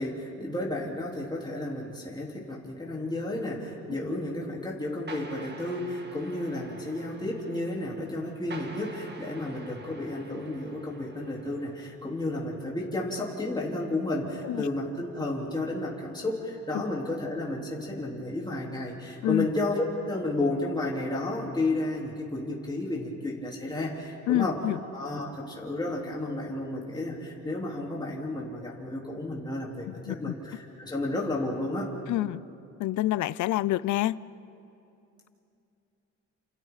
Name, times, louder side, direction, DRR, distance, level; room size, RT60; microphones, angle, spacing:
voice 1, 0.0-24.6 24.9-31.9, left 2 dB, 15° left, -4 dB, 3.9 m, -32 dB
sound 1, 5.1-11.9, right 3 dB, 35° right, 2.3 m, -47 dB
voice 2, 24.3-24.8 30.1-30.3 32.1-32.4 32.8-34.2, left 15 dB, 75° left, 20 dB, 0.5 m, -27 dB
29.5 x 28.5 x 4.1 m, 2.7 s
cardioid pair, 90°, 30 cm